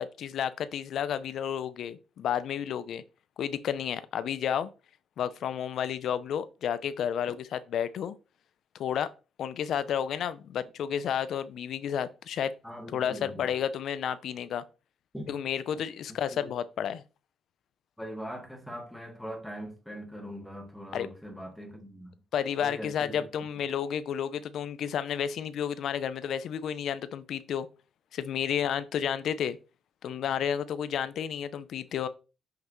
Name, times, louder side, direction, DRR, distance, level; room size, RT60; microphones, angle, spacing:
voice 1, 0.0-3.0 3.4-4.7 5.2-8.2 8.8-9.1 9.4-12.5 12.9-14.6 15.3-17.0 20.9-21.1 22.3-27.7 28.1-29.6 30.0-32.1, left 9 dB, 70° left, 0.5 m, -31 dB
voice 2, 12.6-13.5 15.1-15.3 16.3-16.5 18.0-22.2 22.6-23.2 23.6-23.7, equal, 5° left, 1.7 m, -41 dB
5.8 x 5.4 x 3.1 m
cardioid pair, 90°, 0 cm